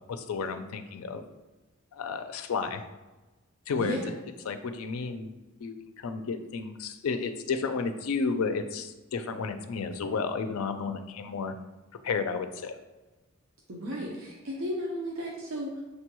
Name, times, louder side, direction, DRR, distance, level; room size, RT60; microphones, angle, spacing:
voice 1, 0.1-1.2 1.9-2.8 3.7-4.0 4.5-5.3 5.6-11.5 12.0-12.8, left 5 dB, 80° left, 8 dB, 0.4 m, -32 dB
voice 2, 3.7-4.1 13.7-15.8, equal, 65° right, -3 dB, 0.6 m, -34 dB
6.6 x 2.2 x 3.0 m, 1.1 s
head